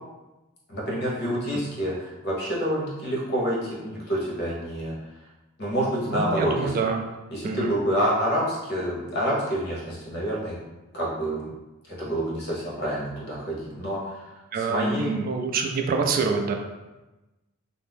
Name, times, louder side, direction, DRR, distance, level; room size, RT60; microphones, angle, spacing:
voice 1, 0.7-4.9 5.6-6.7 7.3-10.6 10.9-11.5 11.9-15.1, equal, 55° left, -5 dB, 1.0 m, -28 dB
voice 2, 1.3-1.6 6.1-7.0 7.4-7.7 14.5-16.5, right 4 dB, 45° right, 3 dB, 0.3 m, -26 dB
2.6 x 2.0 x 3.4 m, 1.1 s
head